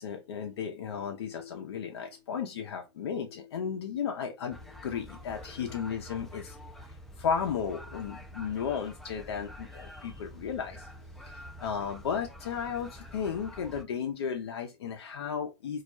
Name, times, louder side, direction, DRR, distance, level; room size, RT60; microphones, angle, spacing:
voice 1, 0.0-6.6 6.9-10.9 11.3-15.8, left 7 dB, 70° left, 0.4 m, -34 dB
sound 1, 4.5-13.8, equal, ahead, 0.3 m, -47 dB
2.3 x 2.1 x 2.6 m
hypercardioid pair, 110°, 14 cm